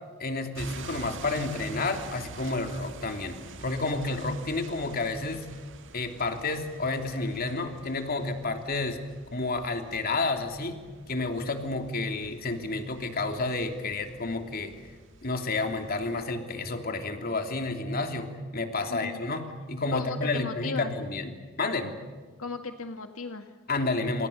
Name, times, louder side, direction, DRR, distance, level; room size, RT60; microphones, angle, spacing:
voice 1, 0.2-5.5 5.9-9.0 9.3-10.8 11.1-14.7 15.2-21.9 23.7-24.3, left 3 dB, 45° left, 5 dB, 3.1 m, -30 dB
sound 1, 0.5-16.3, right 3 dB, 60° right, 1.9 m, -47 dB
voice 2, 18.9-19.2 19.9-20.9 22.4-23.5, left 4 dB, 85° left, 7 dB, 1.8 m, -36 dB
29.0 x 28.5 x 6.9 m, 1.5 s
head